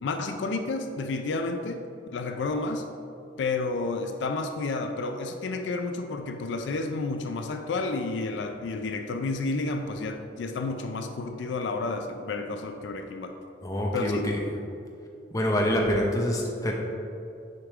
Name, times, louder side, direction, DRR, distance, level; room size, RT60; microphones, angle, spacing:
voice 1, 0.0-1.8 2.1-2.8 3.4-13.3 13.9-14.3, left 3 dB, 70° left, 6 dB, 0.4 m, -31 dB
voice 2, 13.6-14.3 15.3-16.7, equal, 20° left, -1 dB, 0.7 m, -26 dB
6.7 x 4.9 x 3.5 m, 2.6 s
head